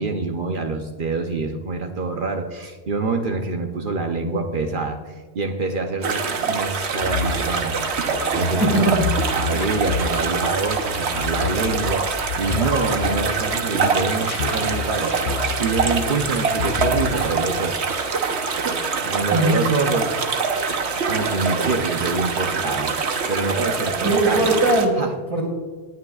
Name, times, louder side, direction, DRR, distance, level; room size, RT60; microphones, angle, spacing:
voice 1, 0.0-9.0 9.3-18.0 19.0-20.1 21.1-22.9 23.3-24.5 25.0-25.1, right 3 dB, 55° right, 5 dB, 0.9 m, -26 dB
sound 1, 6.0-24.9, right 5 dB, 80° right, 1.2 m, -24 dB
sound 2, 7.0-13.5 13.8-16.3 16.6-17.7, left 6 dB, 70° left, 1.0 m, -29 dB
voice 2, 8.6-9.1 19.3-19.7 24.0-25.0 25.3-25.5, right 2 dB, 35° right, -5 dB, 3.9 m, -19 dB
18.5 x 9.3 x 2.4 m, 1.3 s
omnidirectional pair, 1.1 m